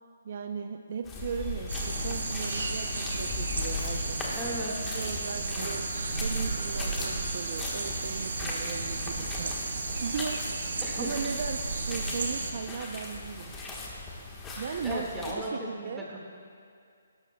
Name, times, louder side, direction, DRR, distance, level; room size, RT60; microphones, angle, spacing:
voice 1, 0.2-4.3 4.9-5.9 6.2-13.5 14.6-16.1, right 6 dB, 50° right, 6 dB, 0.5 m, -37 dB
sound 1, 1.0-15.3, left 3 dB, 10° left, 1.2 m, -38 dB
sound 2, 1.7-12.5, right 3 dB, 75° right, 1.5 m, -33 dB
voice 2, 4.4-4.9 10.8-11.1 14.8-16.2, right 1 dB, 5° right, -5 dB, 1.7 m, -36 dB
20.5 x 11.5 x 2.2 m, 2.4 s
hypercardioid pair, 160°, 0 cm